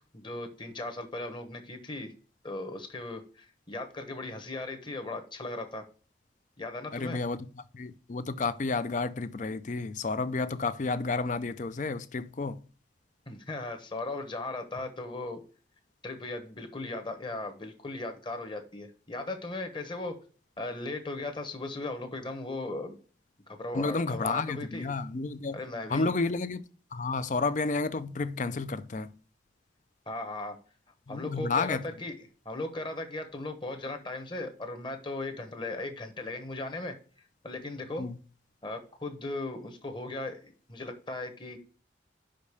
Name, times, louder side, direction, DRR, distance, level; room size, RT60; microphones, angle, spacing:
voice 1, 0.1-2.1 2.4-5.8 6.6-7.2 13.3-15.4 16.0-20.1 20.6-23.0 23.5-24.9 25.5-26.1 30.1-30.6 31.1-32.2 32.4-36.9 37.4-38.1 38.6-41.6, left 2 dB, 25° left, 1.1 m, -37 dB
voice 2, 6.9-12.6 23.7-25.6 25.9-26.6 26.9-29.1 31.1-31.8 38.0-38.2, left 3 dB, 40° left, 0.5 m, -31 dB
5.5 x 5.1 x 6.7 m
head